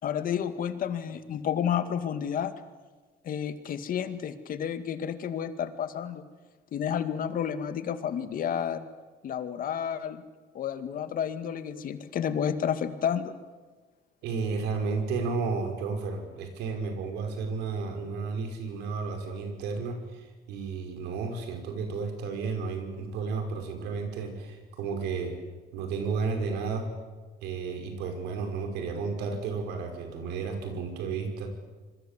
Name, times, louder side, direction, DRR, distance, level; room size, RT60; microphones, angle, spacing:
voice 1, 0.0-2.5 3.2-6.2 6.7-8.9 9.2-10.2 10.5-13.3, left 8 dB, 55° left, 10 dB, 2.2 m, -31 dB
voice 2, 14.2-25.4 25.7-27.0 27.4-31.5, right 4 dB, 90° right, 5 dB, 5.4 m, -32 dB
26.5 x 22.0 x 8.4 m, 1.4 s
cardioid pair, 110°, 17 cm